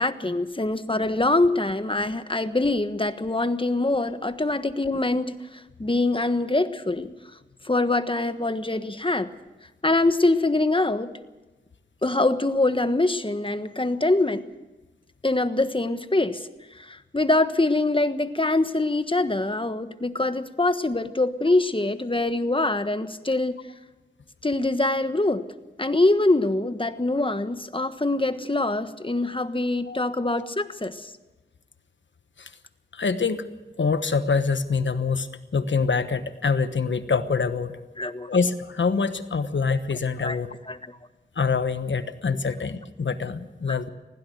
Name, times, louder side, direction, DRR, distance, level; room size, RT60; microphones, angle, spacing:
voice 1, 0.0-7.1 7.6-9.3 9.8-11.1 12.0-14.4 15.2-16.5 16.7-23.6 24.4-25.4 25.8-31.1 38.0-38.3 40.2-40.4 40.7-40.8 43.7-43.8, left 2 dB, 30° left, 10 dB, 1.4 m, -24 dB
voice 2, 32.9-33.4 33.8-35.3 35.5-37.8 38.3-40.5 41.4-43.9, left 5 dB, 85° left, 11 dB, 1.2 m, -25 dB
20.0 x 16.5 x 7.9 m, 1.2 s
cardioid pair, 45°, 19 cm